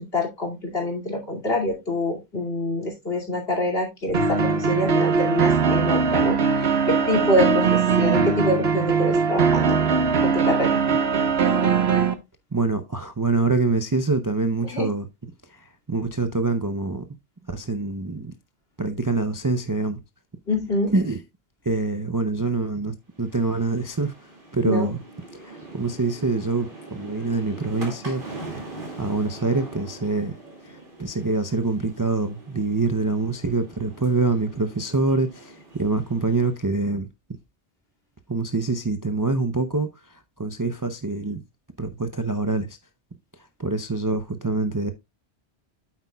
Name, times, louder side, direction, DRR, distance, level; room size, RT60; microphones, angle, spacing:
voice 1, 0.0-9.8 10.2-10.8 14.6-14.9 20.5-20.9 24.6-24.9, left 1 dB, 60° left, 2.8 m, -26 dB
sound 1, 4.1-12.1, right 5 dB, 65° right, 1.3 m, -20 dB
voice 2, 12.5-15.1 15.5-17.0 17.5-18.3 18.8-20.0 20.9-21.2 21.6-24.1 24.5-25.0 25.3-28.2 29.0-30.4 30.6-37.1 38.3-41.4 41.8-42.8 43.6-44.9, right 3 dB, 25° right, 0.5 m, -25 dB
sound 2, 23.1-36.6, right 2 dB, 50° right, 2.5 m, -42 dB
8.7 x 8.1 x 2.3 m
omnidirectional pair, 1.2 m